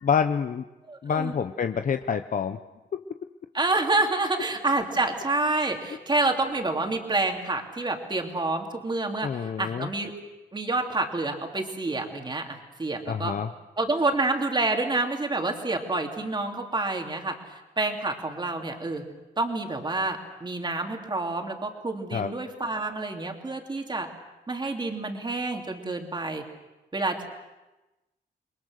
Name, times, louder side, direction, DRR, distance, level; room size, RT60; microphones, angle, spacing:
voice 1, 0.0-0.6 1.0-2.6 2.9-3.0 9.2-9.9 13.1-13.5 22.1-22.3, left 7 dB, 45° left, 8 dB, 0.8 m, -27 dB
voice 2, 0.9-1.3 3.5-10.1 10.5-13.3 13.8-17.3 17.8-19.0 19.4-24.1 24.5-26.4 26.9-27.2, right 2 dB, 25° right, 3 dB, 3.1 m, -28 dB
29.0 x 22.5 x 6.6 m, 1.0 s
wide cardioid pair, 120°, 18 cm